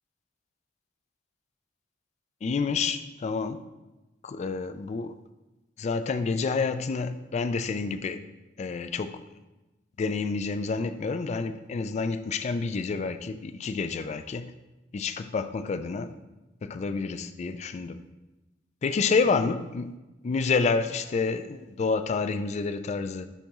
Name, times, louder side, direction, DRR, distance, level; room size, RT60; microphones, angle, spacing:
voice 1, 2.4-3.6 4.2-5.2 5.8-8.2 8.6-9.2 10.0-14.5 14.9-16.1 16.6-18.0 18.8-19.9 20.2-23.3, left 4 dB, 35° left, 11 dB, 0.3 m, -29 dB
9.9 x 3.5 x 3.0 m, 1.1 s
head